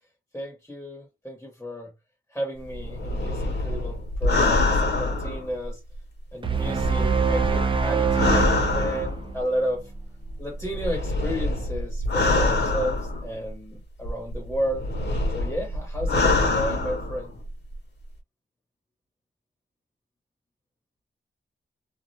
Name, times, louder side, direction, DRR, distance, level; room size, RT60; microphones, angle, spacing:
voice 1, 0.3-1.9 2.3-5.8 6.3-9.9 10.4-14.9 15.3-17.3, equal, 5° left, 1.0 m, -32 dB
sound 1, 2.7-6.0 6.5-9.4 10.3-13.5 14.1-17.5 17.7-17.8, left 2 dB, 60° left, 0.7 m, -25 dB
sound 2, 6.4-9.8, right 5 dB, 25° right, 0.3 m, -24 dB
2.3 x 2.1 x 2.8 m
wide cardioid pair, 120°, 20 cm